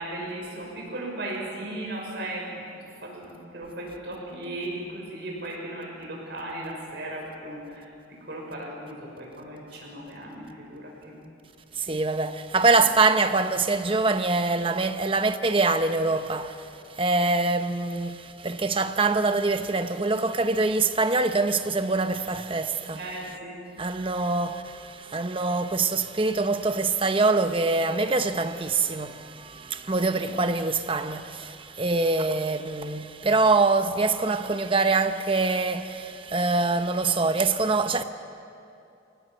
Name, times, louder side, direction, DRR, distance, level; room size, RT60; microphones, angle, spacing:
voice 1, 0.0-11.2 22.9-23.6, right 1 dB, 60° right, 6.1 m, -37 dB
voice 2, 11.7-23.1 23.8-38.0, right 3 dB, 25° right, 0.8 m, -24 dB
24.0 x 18.5 x 7.8 m
head